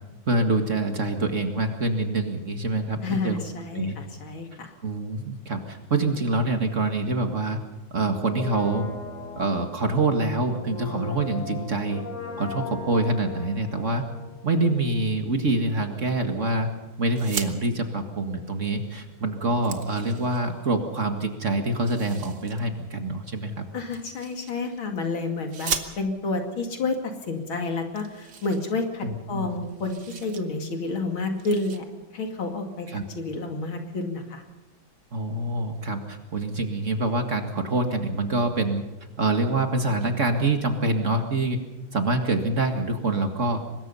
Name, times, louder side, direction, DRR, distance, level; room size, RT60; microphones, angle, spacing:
voice 1, 0.3-3.4 3.8-4.0 4.8-7.6 7.9-8.9 9.4-12.0 12.4-14.0 14.4-16.7 17.0-23.7 29.0-29.6 32.9-33.0 35.1-38.8 39.2-41.6 41.9-43.6, right 2 dB, 40° right, 5 dB, 2.0 m, -25 dB
voice 2, 3.0-4.7 23.7-31.8 32.1-32.9 33.1-34.4, left 3 dB, 75° left, 4 dB, 3.3 m, -30 dB
Brass instrument, 8.2-15.0 15.3-15.4, left 4 dB, 50° left, 3.4 m, -38 dB
sound 1, 17.1-17.5 18.9-19.0 19.3-20.7 21.8-22.6 23.9-24.8 25.5-26.4 27.2-27.3 27.6-27.7 28.0-29.3 29.5-30.4 30.8-31.0 31.4-31.8, right 7 dB, 55° right, 1.9 m, -37 dB
24.0 x 20.5 x 5.6 m, 1.1 s
omnidirectional pair, 2.2 m